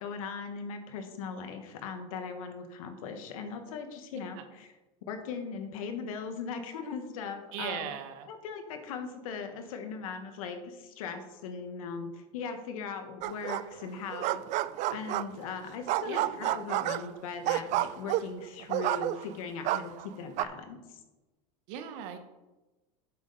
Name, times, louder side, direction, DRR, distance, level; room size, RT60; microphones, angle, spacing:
voice 1, 0.0-4.7 5.1-7.9 8.3-14.4 14.9-21.0, left 5 dB, 85° left, 6 dB, 1.4 m, -39 dB
voice 2, 7.5-8.3 16.1-16.3 21.7-22.2, right 9 dB, 65° right, 7 dB, 1.3 m, -38 dB
sound 1, 13.2-13.8 14.1-15.5 15.9-19.4 19.6-20.4, right 15 dB, 45° right, 0.4 m, -30 dB
8.4 x 7.4 x 4.1 m, 1.1 s
supercardioid pair, 125°, 17 cm